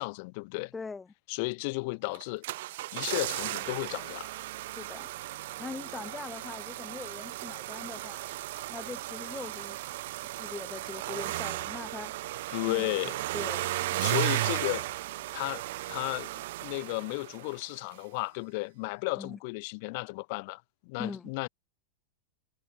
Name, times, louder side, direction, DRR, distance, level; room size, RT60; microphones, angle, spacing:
voice 1, 0.0-0.7 1.3-2.4 2.9-4.3 12.5-13.2 14.0-14.9 15.3-21.5, left 29 dB, 45° left, 7.1 m, -34 dB
voice 2, 0.7-1.1 4.8-5.1 5.6-8.3 8.7-9.8 10.2-12.1 12.6-12.9 13.3-14.0 19.2-19.4 21.0-21.3, left 4 dB, 15° left, 4.7 m, -42 dB
sound 1, 2.1-17.6 17.9-18.0, right 17 dB, 55° right, 0.9 m, -35 dB
figure-of-eight pair, 90°, 0 cm